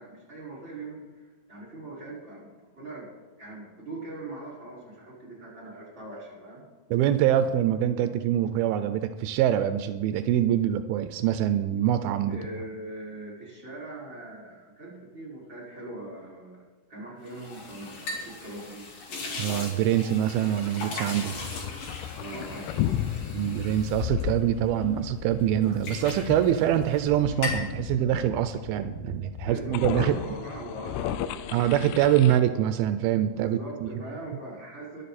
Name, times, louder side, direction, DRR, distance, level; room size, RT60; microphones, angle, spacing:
voice 1, 0.0-3.1 3.4-6.6 12.3-18.9 22.1-23.4 29.5-31.4 33.3-35.0, right 2 dB, 15° right, -4 dB, 5.3 m, -41 dB
voice 2, 6.9-12.4 19.4-21.3 23.3-30.2 31.5-33.9, right 11 dB, 85° right, 10 dB, 2.5 m, -24 dB
sound 1, 17.3-25.0 25.4-27.1 27.3-27.7, left 3 dB, 65° left, 4.3 m, -38 dB
sound 2, 21.3-32.4, left 11 dB, 90° left, 2.6 m, -34 dB
22.5 x 7.6 x 4.2 m, 1.3 s
omnidirectional pair, 4.3 m